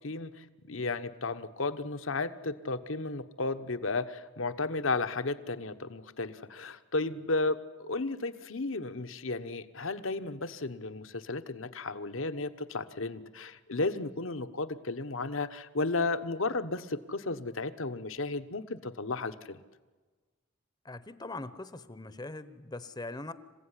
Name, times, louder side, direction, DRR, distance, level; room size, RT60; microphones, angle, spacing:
voice 1, 0.0-19.6, left 3 dB, 65° left, 10 dB, 1.2 m, -34 dB
voice 2, 20.8-23.3, left 2 dB, 20° left, 14 dB, 0.9 m, -41 dB
27.5 x 16.0 x 9.8 m, 1.3 s
head